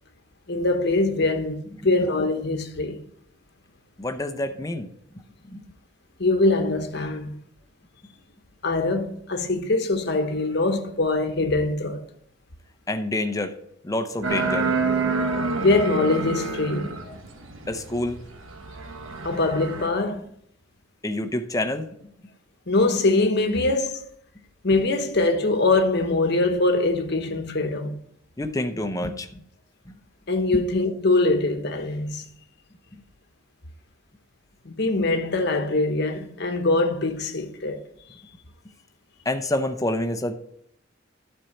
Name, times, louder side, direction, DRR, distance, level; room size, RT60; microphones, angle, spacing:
voice 1, 0.5-1.6 1.8-3.0 6.2-7.3 8.6-12.0 15.6-17.2 19.2-20.3 22.7-24.0 24.6-28.0 30.3-32.2 34.6-37.9, left 2 dB, 55° left, 1.0 m, -23 dB
voice 2, 4.0-4.9 5.1-5.2 5.5-5.6 12.9-13.6 13.8-14.7 17.7-18.2 21.0-21.9 28.4-29.3 30.5-30.6 32.9-33.0 39.2-40.3, left 1 dB, 15° left, 0.7 m, -27 dB
sound 1, 14.2-19.9, right 4 dB, 80° right, 1.2 m, -28 dB
12.0 x 4.5 x 6.6 m
head